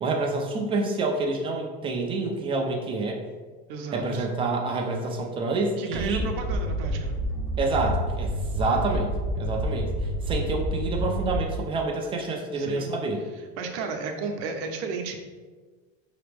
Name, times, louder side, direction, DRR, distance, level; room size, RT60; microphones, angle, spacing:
voice 1, 0.0-3.2 3.9-6.3 7.6-9.1 9.4-9.9 10.2-13.2, right 3 dB, 20° right, 1 dB, 0.4 m, -28 dB
voice 2, 3.7-4.3 5.8-7.2 12.5-12.9 13.6-15.2, right 4 dB, 70° right, 4 dB, 0.7 m, -33 dB
sound 1, 5.9-11.7, equal, 55° left, 0.9 m, -29 dB
5.0 x 2.9 x 3.3 m, 1.4 s
cardioid pair, 165°, 30 cm